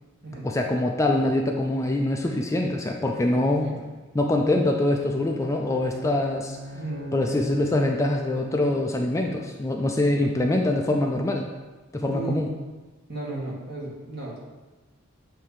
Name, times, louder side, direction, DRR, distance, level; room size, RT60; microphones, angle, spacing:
voice 1, 0.4-3.8 4.1-6.6 7.1-11.5 11.9-12.5, left 1 dB, 15° left, 2 dB, 0.3 m, -24 dB
Bowed string instrument, 5.2-9.3, right 1 dB, 70° right, 0.7 m, -42 dB
voice 2, 6.7-7.3 12.1-12.4 13.1-14.4, right 2 dB, 50° right, -5 dB, 1.7 m, -34 dB
7.3 x 2.7 x 4.8 m, 1.2 s
head